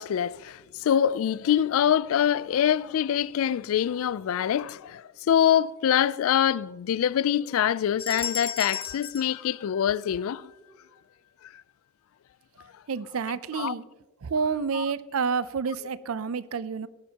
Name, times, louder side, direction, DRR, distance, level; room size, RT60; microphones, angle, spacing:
voice 1, 0.0-10.5 13.6-13.7 14.7-14.8, left 9 dB, 80° left, 0.3 m, -25 dB
sound 1, 8.0-10.4, left 7 dB, 25° left, 0.9 m, -36 dB
voice 2, 12.9-13.8 14.2-16.9, right 5 dB, 85° right, 0.5 m, -29 dB
18.0 x 11.5 x 2.8 m
head